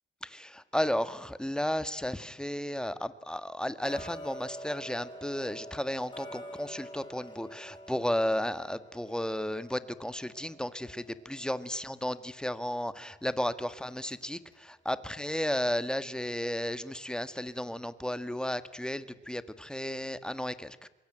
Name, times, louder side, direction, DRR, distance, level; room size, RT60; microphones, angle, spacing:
voice 1, 0.2-20.9, left 1 dB, 5° left, 13 dB, 1.6 m, -33 dB
Tick-tock, 3.8-14.7 15.1-15.2 15.7-15.8 16.3-16.4 16.9-17.0 17.5-17.6 18.1-18.2 18.7-18.8, equal, 25° left, 7.9 m, -48 dB
27.0 x 23.5 x 9.1 m, 1.1 s
cardioid pair, 90°, 20 cm